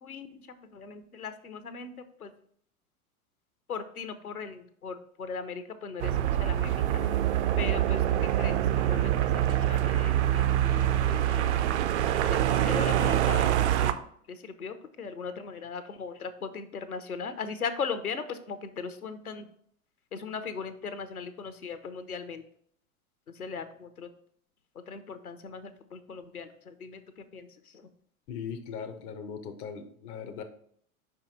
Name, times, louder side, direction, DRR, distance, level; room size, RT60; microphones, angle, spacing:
voice 1, 0.0-2.3 3.7-7.2 7.6-11.7 12.3-14.0 14.3-19.5 20.1-22.4 23.3-24.1 24.9-27.9, left 5 dB, 85° left, 11 dB, 0.7 m, -39 dB
sound 1, 6.0-13.9, right 12 dB, 55° right, 0.5 m, -25 dB
voice 2, 28.3-30.4, left 7 dB, 20° left, 8 dB, 0.3 m, -39 dB
5.1 x 4.8 x 3.9 m, 0.64 s
figure-of-eight pair, 85°, 43 cm